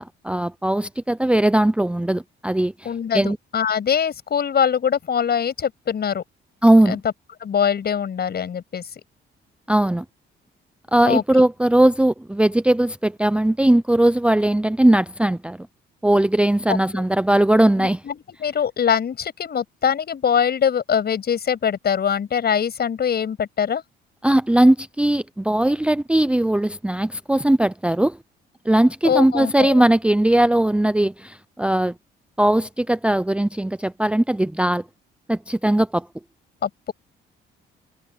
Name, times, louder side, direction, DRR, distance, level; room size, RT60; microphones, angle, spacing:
voice 1, 0.0-2.9 3.1-3.4 6.6-7.0 9.7-10.0 10.9-15.6 16.0-18.0 24.2-28.2 28.7-31.9 32.4-34.8 35.3-36.1, right 1 dB, 5° right, 0.6 m, -19 dB
voice 2, 2.8-6.2 6.8-7.0 7.4-9.0 11.1-11.5 16.7-17.0 17.8-23.8 29.0-29.8 36.6-36.9, left 7 dB, 55° left, 7.7 m, -23 dB
cardioid pair, 90°, 20 cm